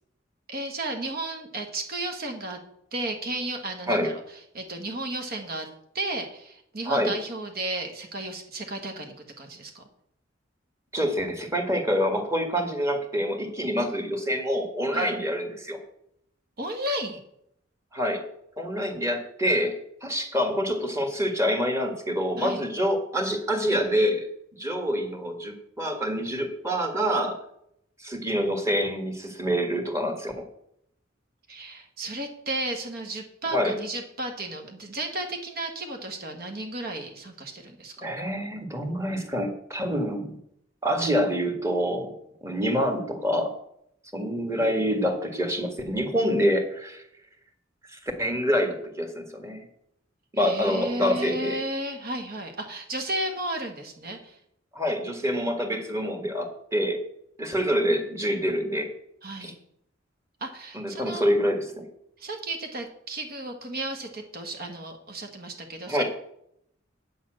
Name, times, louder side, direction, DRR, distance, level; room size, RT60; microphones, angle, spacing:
voice 1, 0.5-2.6 2.9-4.2 4.5-5.7 5.9-9.8 14.9-15.1 16.6-17.2 22.4-22.7 31.5-38.1 50.4-54.4 59.2-59.6 60.4-61.2 62.2-66.0, right 1 dB, 50° right, 4 dB, 1.6 m, -33 dB
voice 2, 10.9-15.8 17.9-18.2 18.6-24.3 24.6-27.4 28.0-30.5 33.5-33.8 38.0-40.3 40.8-42.1 42.4-43.5 44.1-47.0 47.9-49.6 50.3-51.6 54.7-57.0 57.4-58.9 59.4-59.5 60.7-61.8 65.9-66.0, equal, 15° right, 5 dB, 1.7 m, -26 dB
8.7 x 7.1 x 7.6 m, 0.74 s
head